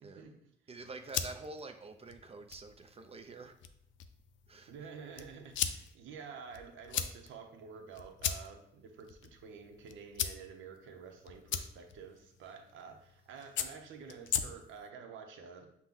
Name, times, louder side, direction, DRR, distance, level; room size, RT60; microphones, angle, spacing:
voice 1, 0.0-0.3 4.7-15.7, right 6 dB, 75° right, 4 dB, 0.7 m, -50 dB
voice 2, 0.7-3.6 4.5-4.7 5.4-5.7, right 3 dB, 30° right, 7 dB, 0.5 m, -47 dB
sound 1, 0.8-14.9, left 9 dB, 70° left, 0.4 m, -41 dB
5.8 x 2.2 x 3.6 m, 0.70 s
cardioid pair, 90°, 20 cm